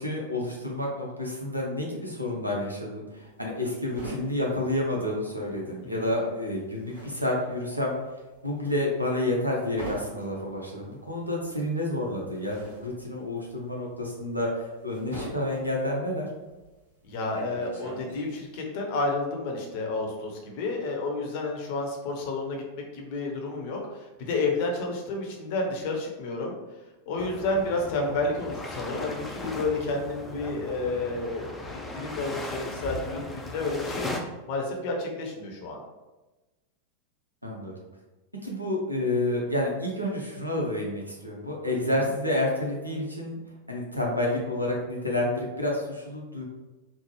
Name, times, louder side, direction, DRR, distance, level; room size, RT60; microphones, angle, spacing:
voice 1, 0.0-7.9 8.4-16.3 37.4-37.7 38.4-43.4 43.7-46.4, left 1 dB, 90° right, -1 dB, 0.6 m, -29 dB
sound 1, 3.1-5.7 5.9-18.5, right 1 dB, 70° right, 1.3 m, -44 dB
voice 2, 17.0-26.6 27.1-35.8 41.9-42.0, left 2 dB, 45° left, 1 dB, 0.6 m, -31 dB
sound 2, 27.2-34.2, left 2 dB, 10° left, 0.4 m, -37 dB
3.2 x 2.0 x 3.0 m, 1.1 s
figure-of-eight pair, 90°, 0 cm